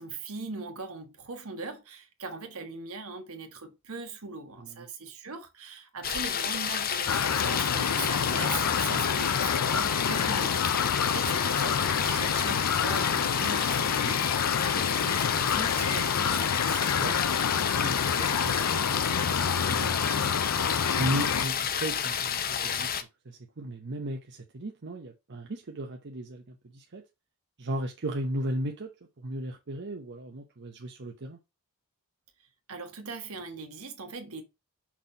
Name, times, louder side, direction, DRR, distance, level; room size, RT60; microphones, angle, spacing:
voice 1, 0.0-16.8 32.7-34.4, right 4 dB, 70° right, 1.4 m, -40 dB
sound 1, 6.0-23.0, left 8 dB, 40° left, 0.7 m, -30 dB
sound 2, 7.1-21.5, left 7 dB, 85° left, 0.5 m, -28 dB
voice 2, 16.9-20.4 21.0-22.9 23.2-27.0 27.6-28.9 29.2-31.4, right 1 dB, 50° right, 0.8 m, -36 dB
6.0 x 4.1 x 4.0 m
head